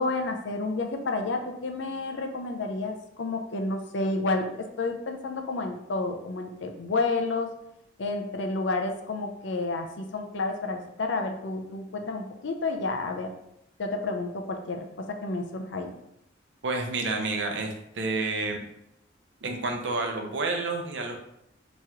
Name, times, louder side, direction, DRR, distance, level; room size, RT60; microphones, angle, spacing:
voice 1, 0.0-4.5 4.8-7.5 8.0-13.3 13.8-15.9, left 3 dB, 65° left, 5 dB, 0.5 m, -30 dB
voice 2, 16.6-18.6 19.4-21.2, right 3 dB, 65° right, 3 dB, 0.6 m, -29 dB
3.6 x 3.0 x 2.9 m, 0.80 s
head